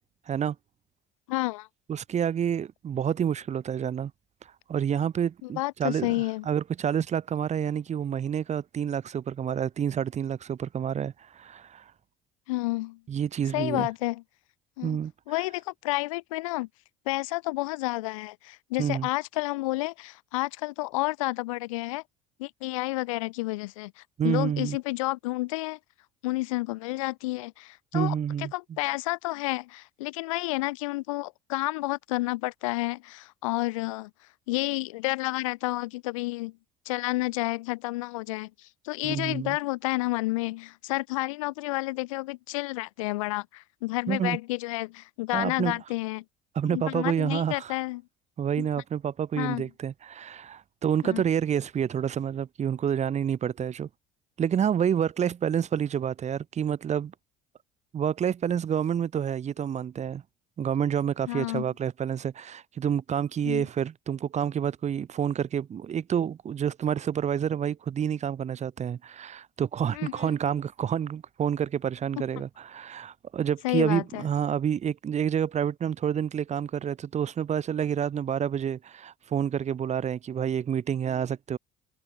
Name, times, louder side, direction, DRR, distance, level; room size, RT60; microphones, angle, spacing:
voice 1, 1.3-1.7 5.4-6.5 12.5-13.0 13.5-14.2 14.8-15.0 15.3-16.7 17.1-22.0 22.4-25.8 26.2-34.1 34.5-36.5 36.9-46.2 46.6-48.0 48.6-48.7 49.4-49.7 51.0-51.2 61.3-61.7 63.4-63.7 69.9-70.3 73.6-74.3, left 21 dB, 85° left, 5.4 m, -30 dB
voice 2, 1.9-4.1 4.7-11.8 13.1-13.9 14.8-15.1 18.8-19.1 24.2-24.8 27.9-28.5 39.0-39.6 44.1-44.4 45.3-45.8 46.5-47.7 48.4-53.9 54.4-57.1 57.9-60.2 60.6-81.6, right 8 dB, 45° right, 6.3 m, -28 dB
hypercardioid pair, 75°, 17 cm